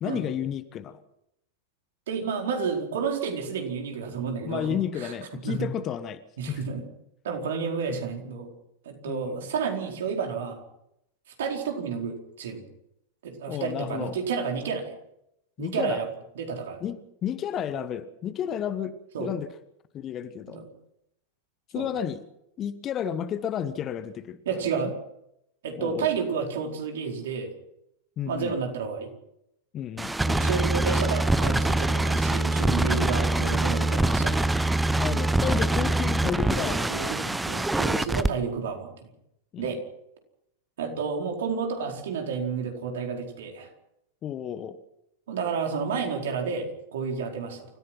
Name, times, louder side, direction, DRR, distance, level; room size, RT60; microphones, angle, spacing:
voice 1, 0.0-1.0 4.4-6.2 6.5-6.7 9.0-9.5 13.5-14.1 15.6-16.0 16.8-19.5 19.9-20.6 21.7-22.2 22.6-24.4 25.8-26.1 28.2-28.5 29.7-30.1 35.0-36.9 39.5-39.7 44.2-44.8, left 9 dB, 30° left, 12 dB, 1.4 m, -32 dB
voice 2, 2.1-4.7 5.0-5.1 5.4-5.7 6.4-6.8 7.2-8.5 8.8-10.6 11.4-12.6 13.2-14.9 15.6-16.1 16.3-16.8 19.1-19.3 20.5-20.6 21.7-21.9 24.4-24.9 25.6-27.5 28.2-29.1 30.3-34.4 36.5-39.1 39.6-39.8 40.8-43.7 45.3-46.7 46.9-47.7, right 5 dB, 60° right, 2 dB, 4.5 m, -30 dB
sound 1, 30.0-38.3, right 2 dB, 5° right, 0.9 m, -24 dB
28.5 x 15.5 x 6.0 m, 0.81 s
figure-of-eight pair, 90°, 0 cm